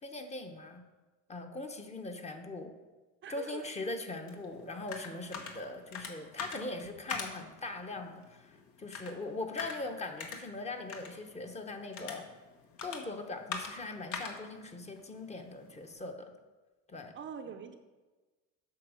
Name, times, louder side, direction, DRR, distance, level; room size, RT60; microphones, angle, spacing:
voice 1, 0.0-0.8 1.3-2.8 3.3-12.3 12.8-16.3 16.9-17.1, left 2 dB, 20° left, 5 dB, 0.9 m, -41 dB
voice 2, 3.2-3.7 17.1-17.8, right 7 dB, 40° right, 6 dB, 0.6 m, -43 dB
sound 1, 4.3-15.9, left 5 dB, 70° left, 1.5 m, -45 dB
8.5 x 5.8 x 6.3 m, 1.2 s
cardioid pair, 145°, 32 cm